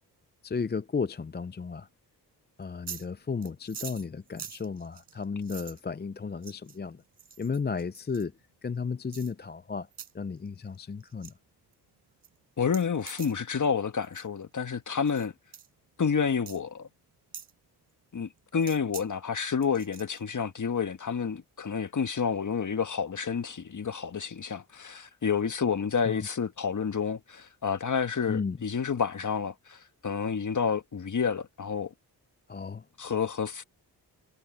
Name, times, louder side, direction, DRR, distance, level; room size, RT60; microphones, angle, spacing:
voice 1, 0.4-1.9 2.6-7.0 7.4-8.3 8.6-9.9 10.1-11.3 26.1-26.3 28.3-28.6 32.5-32.8, left 5 dB, 25° left, 0.6 m, -34 dB
sound 1, 2.6-3.1 3.4-5.8 6.4-6.8 7.2-8.2 9.1-9.3 9.9-10.1 10.5-10.8 11.0-11.3 11.7-11.8 12.2-12.3 12.6-13.4 14.0-14.3 15.1-15.3 15.5-15.7 16.5-16.6 17.3-17.5 18.6-19.1 19.4-20.2, right 8 dB, 80° right, 5.8 m, -44 dB
voice 2, 12.6-15.3 16.0-16.9 18.1-31.9 33.0-33.6, left 6 dB, 45° left, 1.6 m, -29 dB
cardioid pair, 60°, 41 cm